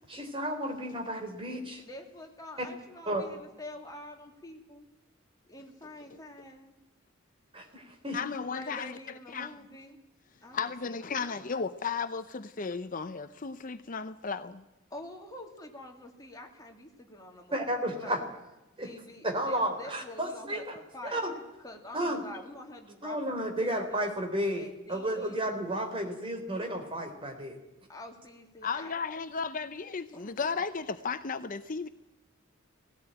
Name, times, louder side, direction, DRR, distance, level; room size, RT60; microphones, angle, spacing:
voice 1, 0.1-1.8 3.1-3.2 7.5-8.2 17.5-18.2 18.8-18.9 19.2-20.8 21.0-21.3 21.9-22.2 23.0-27.6, right 1 dB, 25° right, 3.6 m, -32 dB
voice 2, 1.8-4.9 5.5-6.7 8.5-10.0 10.4-11.5 14.9-17.6 18.0-18.2 18.8-21.2 21.6-24.1 24.5-25.4 27.9-28.9 30.1-30.4, left 1 dB, 20° left, 2.8 m, -47 dB
voice 3, 8.1-9.0 9.3-9.5 10.5-14.6 28.6-31.9, left 5 dB, 40° left, 0.7 m, -34 dB
18.5 x 17.0 x 9.0 m
head